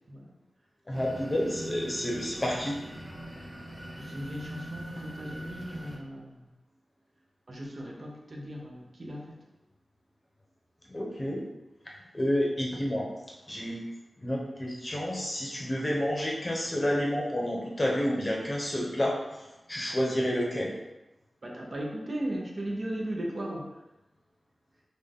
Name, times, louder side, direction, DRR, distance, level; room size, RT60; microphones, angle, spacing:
voice 1, 0.9-2.8 10.9-11.4 12.1-13.1 13.5-13.8 14.2-19.2 19.7-20.7, equal, 25° left, -2 dB, 0.9 m, -29 dB
sound 1, 0.9-6.0, right 1 dB, 10° right, 0.8 m, -42 dB
voice 2, 4.0-6.4 7.5-9.4 21.4-23.7, right 1 dB, 45° right, -1 dB, 0.8 m, -37 dB
3.8 x 2.5 x 3.6 m, 0.95 s
wide cardioid pair, 85°, 0 cm